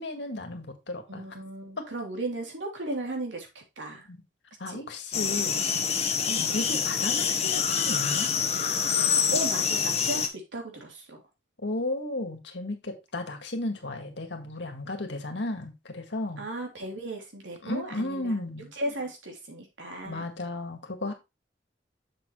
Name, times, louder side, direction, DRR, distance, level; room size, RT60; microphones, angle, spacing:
voice 1, 0.0-1.2 4.1-4.2 4.6-5.6 6.4-8.3 11.6-16.4 17.6-18.7 20.0-21.1, left 2 dB, 70° left, 1.9 m, -34 dB
voice 2, 1.1-4.1 4.7-4.8 6.3-6.6 9.0-11.2 16.4-18.4 18.7-20.3, right 2 dB, 85° right, 3.1 m, -36 dB
sound 1, 5.1-10.3, left 7 dB, 35° left, 1.1 m, -26 dB
7.3 x 7.2 x 3.1 m
head